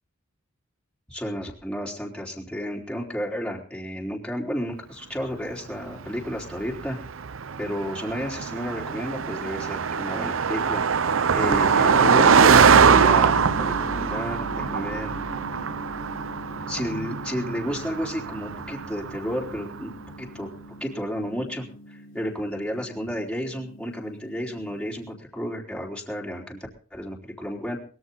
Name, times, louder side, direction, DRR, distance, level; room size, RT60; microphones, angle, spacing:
voice 1, 1.1-7.0 7.6-10.8 11.3-15.2 16.7-19.9 20.2-20.5 20.8-26.6 26.9-27.8, equal, 5° left, -2 dB, 3.7 m, -32 dB
Car passing by, 6.0-19.7, right 6 dB, 90° right, 0.7 m, -22 dB
Gong, 11.4-25.1, equal, 75° left, 2.7 m, -38 dB
21.0 x 14.0 x 4.0 m, 0.42 s
head